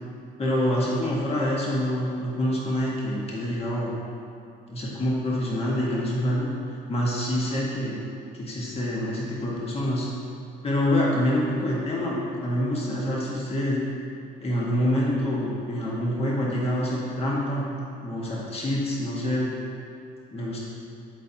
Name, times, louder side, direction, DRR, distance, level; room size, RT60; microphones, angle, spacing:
voice 1, 0.4-3.9 4.7-6.5 6.9-8.0 8.3-10.1 10.6-13.8 14.4-17.6 18.0-19.5 20.3-20.6, equal, 30° left, -5 dB, 1.7 m, -26 dB
12.5 x 4.3 x 2.9 m, 2.7 s
supercardioid pair, 80°, 19 cm